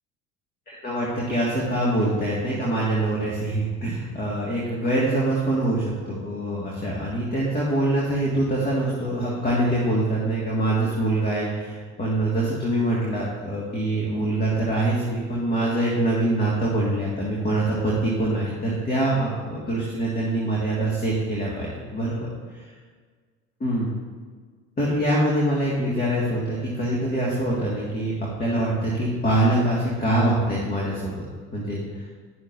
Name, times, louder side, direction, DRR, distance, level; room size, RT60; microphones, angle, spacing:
voice 1, 0.7-22.3 23.6-23.9 24.8-28.1 28.4-31.2 31.5-31.8, right 1 dB, 25° left, -5 dB, 2.0 m, -24 dB
11.0 x 6.5 x 2.7 m, 1.5 s
hypercardioid pair, 70°, 34 cm